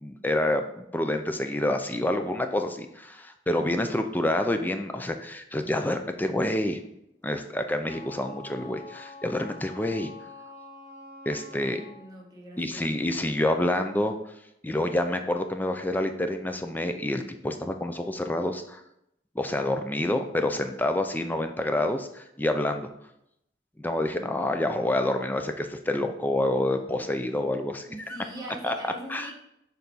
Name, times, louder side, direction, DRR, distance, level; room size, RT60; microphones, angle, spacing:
voice 1, 0.0-6.8 7.2-10.1 11.3-11.8 12.6-14.2 14.6-18.8 19.4-22.9 23.8-27.9 28.6-28.7 29.1-29.3, left 1 dB, 10° left, 6 dB, 0.4 m, -28 dB
Wind instrument woodwind instrument, 7.8-12.1, left 3 dB, 45° right, 1.1 m, -46 dB
voice 2, 11.6-13.0 27.8-29.3, right 1 dB, 20° right, -2 dB, 1.2 m, -42 dB
6.6 x 4.0 x 4.0 m, 0.80 s
head